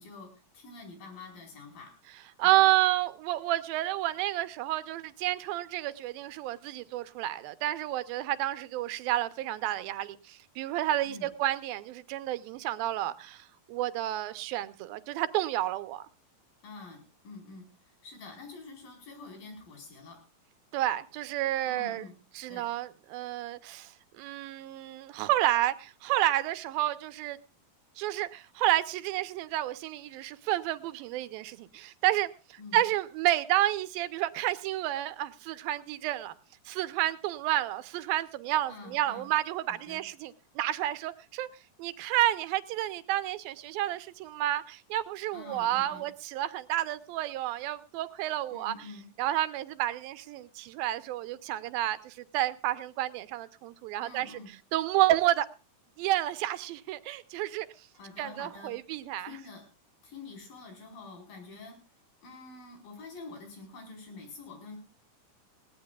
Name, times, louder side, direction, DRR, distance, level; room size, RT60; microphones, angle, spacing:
voice 1, 0.0-1.9 2.4-2.7 11.0-11.3 16.6-20.2 21.7-22.1 22.5-22.7 32.6-32.8 38.6-39.3 39.7-40.0 45.3-46.1 48.5-49.1 54.0-54.5 57.9-58.7 59.2-59.6 60.0-61.8 62.2-64.8, left 3 dB, 75° left, 6.2 m, -47 dB
voice 2, 2.4-16.0 20.7-22.0 22.4-27.4 28.0-32.3 32.7-36.3 36.7-41.5 41.8-48.7 49.2-54.3 54.7-55.5 56.0-57.7 58.2-59.3, right 14 dB, 90° right, 2.6 m, -30 dB
20.0 x 17.0 x 2.3 m
omnidirectional pair, 4.1 m